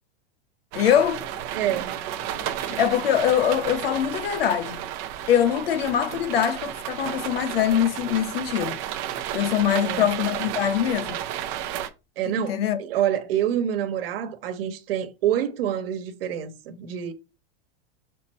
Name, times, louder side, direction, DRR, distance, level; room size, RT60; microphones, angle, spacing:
voice 1, 0.7-1.2 2.6-4.8 5.3-8.8 9.3-11.2 12.3-12.8, left 10 dB, 80° left, 1.1 m, -23 dB
sound 1, 0.7-11.9, right 11 dB, 25° right, 0.6 m, -32 dB
voice 2, 1.5-1.9 9.7-10.1 12.2-17.1, right 10 dB, 75° right, 1.3 m, -27 dB
6.6 x 4.2 x 4.2 m
supercardioid pair, 180°, 29 cm